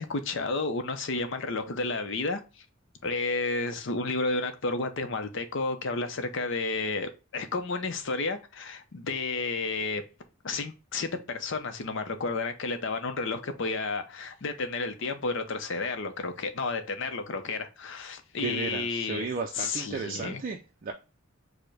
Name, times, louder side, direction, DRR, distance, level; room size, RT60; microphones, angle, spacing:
voice 1, 0.0-2.4 3.0-10.0 10.4-19.2 19.5-20.4, left 3 dB, 60° left, 0.6 m, -31 dB
voice 2, 18.4-20.9, right 4 dB, 40° right, 0.4 m, -34 dB
4.8 x 2.1 x 4.7 m
head